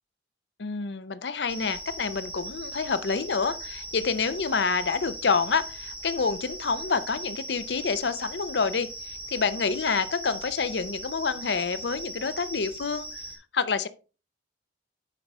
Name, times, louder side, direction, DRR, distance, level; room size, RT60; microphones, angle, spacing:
voice 1, 0.6-13.1 13.5-13.9, left 5 dB, 80° left, 0.7 m, -28 dB
sound 1, 1.5-13.3, right 1 dB, 5° right, 3.8 m, -39 dB
9.2 x 5.5 x 4.6 m
head